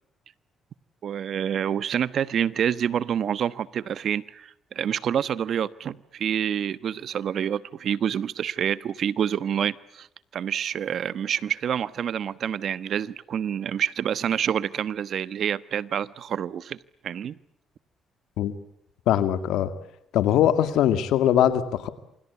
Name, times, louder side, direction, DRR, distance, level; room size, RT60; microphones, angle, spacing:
voice 1, 1.0-10.1 10.3-17.3, right 9 dB, 65° right, 17 dB, 1.1 m, -27 dB
voice 2, 19.1-19.7 20.1-21.9, left 11 dB, 85° left, 11 dB, 2.3 m, -21 dB
28.0 x 25.5 x 8.4 m, 0.76 s
cardioid pair, 90°, 0 cm